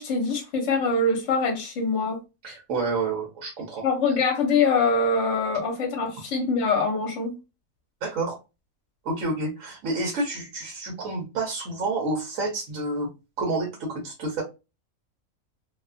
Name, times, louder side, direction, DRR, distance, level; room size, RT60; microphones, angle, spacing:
voice 1, 0.0-2.2 3.8-7.3, left 3 dB, 60° left, 1.1 m, -24 dB
voice 2, 2.4-3.8 8.0-8.4 9.0-13.1 13.4-14.4, right 2 dB, 70° right, 1.1 m, -29 dB
2.7 x 2.3 x 2.3 m
omnidirectional pair, 1.5 m